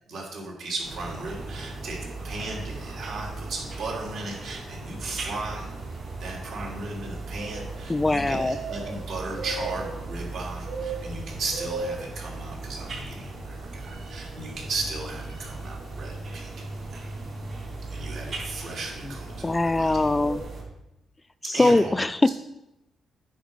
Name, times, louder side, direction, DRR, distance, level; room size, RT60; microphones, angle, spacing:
voice 1, 0.1-5.7 6.2-16.5 16.9-17.0 17.9-19.3 19.6-19.9 21.5-22.3, right 3 dB, 70° right, -2 dB, 3.2 m, -36 dB
sound 1, 0.8-20.6, right 3 dB, 50° right, 3.8 m, -36 dB
voice 2, 7.9-8.6 19.4-20.5 21.5-22.2, left 2 dB, 15° left, 14 dB, 0.3 m, -22 dB
8.9 x 5.9 x 5.2 m, 0.89 s
cardioid pair, 110°, 0 cm